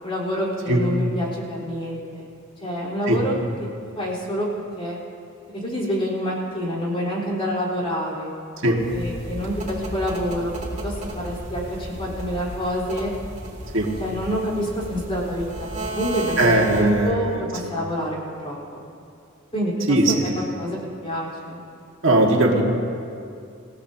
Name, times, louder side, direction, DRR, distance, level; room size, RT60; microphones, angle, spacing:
voice 1, 0.0-2.3 2.6-3.4 4.0-4.5 4.8-5.0 5.6-8.3 8.9-10.5 10.8-13.1 13.8-18.5 19.5-20.0 20.2-20.8 21.0-21.6, equal, 30° left, -5 dB, 4.4 m, -27 dB
sound 1, 8.8-17.1, right 1 dB, 35° right, 3.0 m, -34 dB
voice 2, 16.4-17.7 19.9-20.5 22.0-22.6, right 1 dB, 70° right, -1 dB, 2.0 m, -20 dB
27.5 x 16.5 x 2.9 m, 2.5 s
head